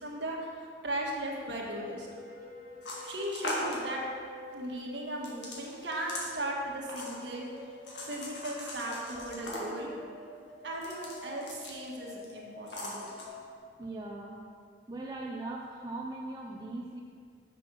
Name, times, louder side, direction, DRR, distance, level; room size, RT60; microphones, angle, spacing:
voice 1, 0.0-2.1 3.0-4.0 4.5-7.5 8.1-9.9 10.6-13.1, right 1 dB, 75° right, -2 dB, 1.4 m, -37 dB
sound 1, 1.4-13.6, left 2 dB, 45° left, 1.3 m, -49 dB
sound 2, 2.8-3.8 5.2-6.3 6.9-7.5 7.9-9.9 10.7-11.9 12.2-12.3 12.7-13.3, left 1 dB, 70° left, 1.6 m, -39 dB
voice 2, 13.8-14.4 14.9-17.0, right 2 dB, 20° right, -2 dB, 0.5 m, -39 dB
6.1 x 6.1 x 6.1 m, 2.1 s
head